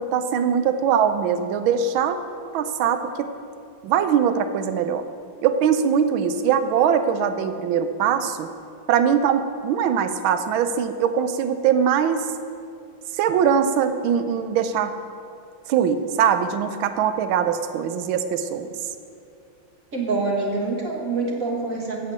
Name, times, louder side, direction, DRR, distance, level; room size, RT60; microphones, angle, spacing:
voice 1, 0.0-2.2 2.5-3.3 3.8-5.0 5.4-8.5 8.9-12.3 13.1-14.9 15.7-18.7, right 8 dB, 75° right, 10 dB, 1.4 m, -22 dB
voice 2, 19.9-22.1, right 3 dB, 45° right, -1 dB, 1.5 m, -26 dB
8.0 x 7.2 x 7.5 m, 2.4 s
omnidirectional pair, 2.4 m